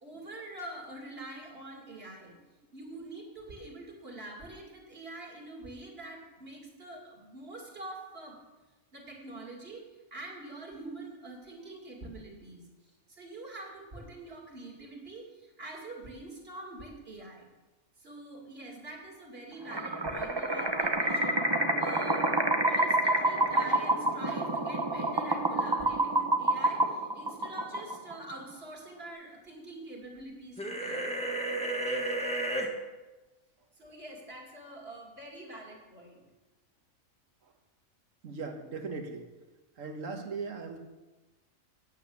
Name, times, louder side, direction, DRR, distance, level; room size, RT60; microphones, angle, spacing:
voice 1, 0.0-2.4 2.7-8.4 8.9-12.7 13.1-17.5 18.0-21.4 21.8-22.3 22.6-31.1 33.7-36.2, right 2 dB, 45° right, 0 dB, 2.6 m, -45 dB
sound 1, 19.7-28.2, right 1 dB, 20° right, 0.8 m, -28 dB
sound 2, 30.6-32.7, right 1 dB, 5° left, 1.4 m, -32 dB
voice 2, 38.2-39.3 39.8-40.8, right 4 dB, 65° right, 4 dB, 1.6 m, -38 dB
9.2 x 8.5 x 7.0 m, 1.1 s
omnidirectional pair, 1.4 m